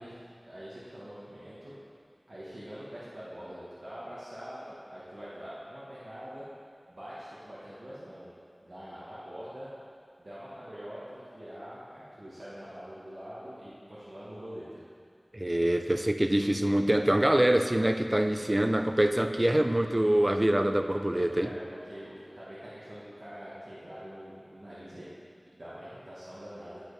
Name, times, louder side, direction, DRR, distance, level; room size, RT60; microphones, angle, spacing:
voice 1, 0.0-1.7 2.3-6.4 6.9-8.3 8.6-9.7 10.2-14.8 21.4-25.1 25.5-26.8, equal, 80° right, -10 dB, 1.2 m, -44 dB
voice 2, 15.3-21.5, right 1 dB, 30° right, 7 dB, 0.4 m, -25 dB
10.5 x 4.4 x 3.2 m, 2.2 s
wide cardioid pair, 50°, 0 cm